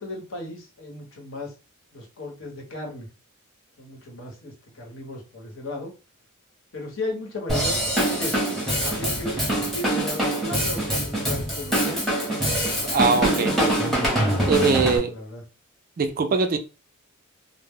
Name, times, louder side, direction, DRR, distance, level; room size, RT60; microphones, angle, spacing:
voice 1, 0.0-1.5 1.9-3.1 3.8-5.9 6.7-8.3 8.8-12.1 12.5-15.4, left 1 dB, 60° left, 0 dB, 0.9 m, -35 dB
Drum kit / Drum, 7.5-15.0, right 1 dB, ahead, 0.7 m, -24 dB
voice 2, 12.9-13.5 14.5-15.1 16.0-16.6, right 4 dB, 40° right, 7 dB, 0.3 m, -21 dB
2.1 x 2.0 x 3.5 m, 0.32 s
head